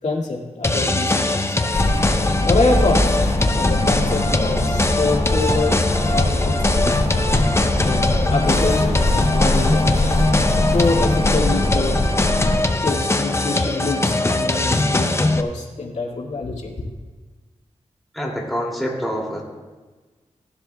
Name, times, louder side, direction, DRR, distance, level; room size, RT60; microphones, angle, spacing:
voice 1, 0.0-1.6 2.5-3.2 3.5-7.1 7.8-10.0 10.7-12.0 12.8-16.9, left 3 dB, 80° left, -3 dB, 2.1 m, -25 dB
sound 1, 0.6-15.4, left 2 dB, 20° left, 0.7 m, -21 dB
sound 2, 1.7-12.6, left 1 dB, 65° left, 3.4 m, -22 dB
voice 2, 18.1-19.4, equal, ahead, -3 dB, 2.6 m, -26 dB
17.0 x 12.0 x 2.3 m, 1.3 s
wide cardioid pair, 80°, 12 cm